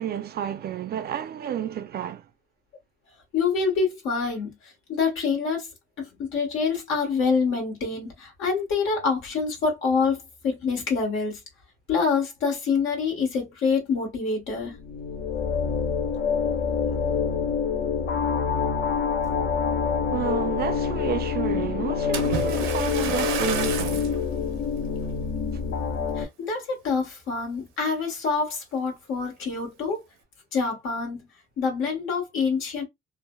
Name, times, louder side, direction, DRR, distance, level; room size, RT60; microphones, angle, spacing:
voice 1, 0.0-2.3 20.1-24.1, right 10 dB, 50° right, 0.4 m, -31 dB
voice 2, 3.3-4.5 4.9-5.7 6.0-11.4 11.9-14.7 26.2-30.0 30.5-31.2 31.6-32.8, left 5 dB, 85° left, 1.3 m, -26 dB
sound 1, 14.7-26.2, left 6 dB, 65° left, 0.6 m, -26 dB
Splash splatter, 22.1-24.2 24.8-25.1 25.7-25.8, right 8 dB, 85° right, 0.7 m, -31 dB
3.2 x 2.0 x 2.2 m
cardioid pair, 90°, 20 cm